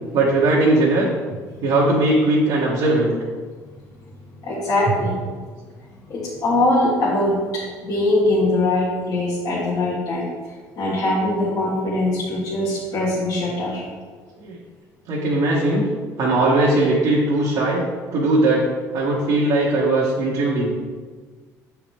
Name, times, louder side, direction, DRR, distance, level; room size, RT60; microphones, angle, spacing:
voice 1, 0.1-1.1 1.6-3.2 4.9-5.1 14.4-14.6 15.1-15.8 16.2-17.8 18.1-18.6 18.9-20.8, right 2 dB, 70° right, -5 dB, 1.3 m, -19 dB
voice 2, 4.4-5.1 6.1-10.3 10.8-13.8, left 2 dB, 55° left, -7 dB, 1.7 m, -22 dB
7.1 x 4.7 x 3.4 m, 1.5 s
supercardioid pair, 85°, 7 cm